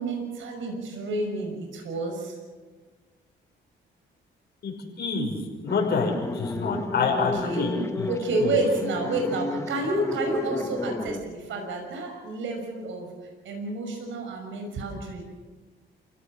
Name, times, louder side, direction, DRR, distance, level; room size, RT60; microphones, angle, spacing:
voice 1, 0.0-2.4 7.1-7.7 8.1-13.1 13.4-15.2, right 2 dB, 75° right, 3 dB, 6.2 m, -29 dB
voice 2, 4.6-8.1 8.4-8.6, left 4 dB, 55° left, 1 dB, 6.2 m, -28 dB
sound 1, 5.7-11.2, left 2 dB, 15° left, 1.4 m, -33 dB
28.0 x 17.0 x 7.5 m, 1.3 s
cardioid pair, 90°, 20 cm